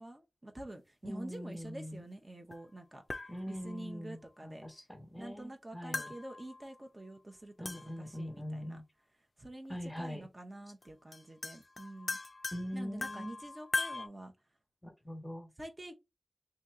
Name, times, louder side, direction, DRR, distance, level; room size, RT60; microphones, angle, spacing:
voice 1, 0.0-4.7 5.2-8.8 9.4-12.2 12.7-14.3 15.6-15.9, right 1 dB, 30° right, 0.8 m, -48 dB
voice 2, 1.0-2.0 3.3-6.1 7.6-8.8 9.7-10.2 12.5-13.4 14.8-15.5, equal, 10° left, 1.2 m, -42 dB
sound 1, 2.5-2.6 3.1-3.8 5.9-6.8 7.6-8.2 9.6-9.7 10.8-10.9 11.1-14.1, left 3 dB, 45° left, 0.4 m, -40 dB
2.9 x 2.8 x 3.6 m
wide cardioid pair, 75°, 0 cm